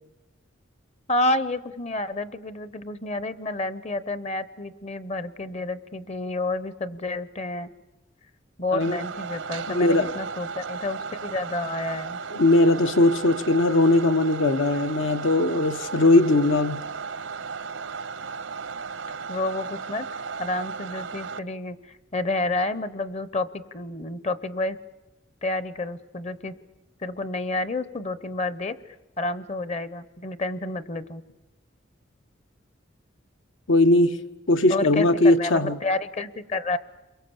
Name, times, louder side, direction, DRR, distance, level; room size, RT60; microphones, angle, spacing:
voice 1, 1.1-7.7 8.6-12.2 19.3-20.1 20.4-24.8 25.4-26.5 27.0-28.8 29.2-31.2 34.7-35.1 35.4-36.8, left 2 dB, 35° left, 0.8 m, -29 dB
sound 1, 8.8-21.4, right 5 dB, 80° right, 0.8 m, -35 dB
voice 2, 9.7-10.1 12.3-16.8 33.7-34.2 34.5-35.8, left 2 dB, 75° left, 1.1 m, -19 dB
29.5 x 23.0 x 7.2 m
head